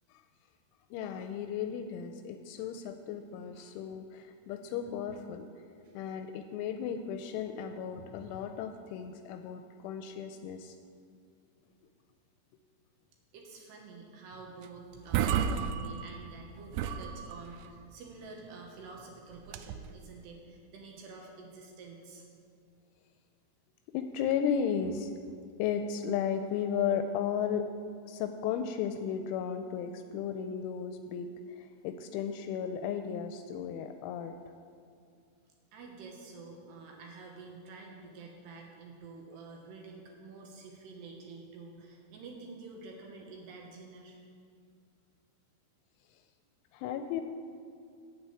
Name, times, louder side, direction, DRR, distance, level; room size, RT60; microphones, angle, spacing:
voice 1, 0.9-5.5 5.9-10.8 23.9-25.1 25.6-27.7 28.1-34.3 46.7-47.2, left 8 dB, 85° left, 7 dB, 3.0 m, -34 dB
voice 2, 13.3-22.3 35.7-44.2, right 3 dB, 70° right, 0 dB, 2.9 m, -49 dB
sound 1, 14.6-14.7 15.0-16.4 16.7-17.7 19.4-20.0, right 8 dB, 85° right, 2.4 m, -32 dB
8.8 x 7.8 x 8.3 m, 2.4 s
omnidirectional pair, 5.5 m